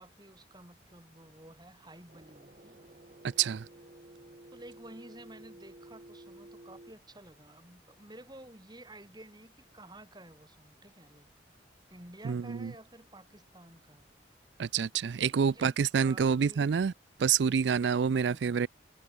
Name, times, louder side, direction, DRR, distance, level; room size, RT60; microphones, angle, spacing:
voice 1, 0.0-2.8 4.5-11.3 11.9-14.1 15.3-16.7 18.3-18.6, right 1 dB, 20° right, 4.5 m, -52 dB
sound 1, 2.1-6.9, right 1 dB, 40° right, 1.1 m, -53 dB
voice 2, 12.2-12.7 14.6-16.9 17.2-18.7, right 6 dB, 75° right, 0.4 m, -27 dB
head